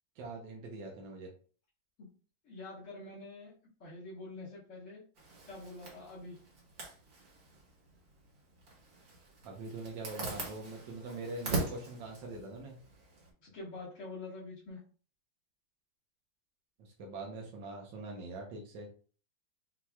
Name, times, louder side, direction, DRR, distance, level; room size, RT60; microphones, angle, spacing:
voice 1, 0.2-1.3 9.4-12.8 16.8-18.9, right 2 dB, 75° right, 0 dB, 1.5 m, -43 dB
voice 2, 2.4-3.5 3.8-5.0 5.5-6.4 13.4-14.8, left 2 dB, 40° left, -10 dB, 1.8 m, -46 dB
Zipper (clothing), 5.2-13.3, right 3 dB, 55° right, 1.7 m, -42 dB
5.9 x 3.0 x 2.3 m, 0.40 s
omnidirectional pair, 2.0 m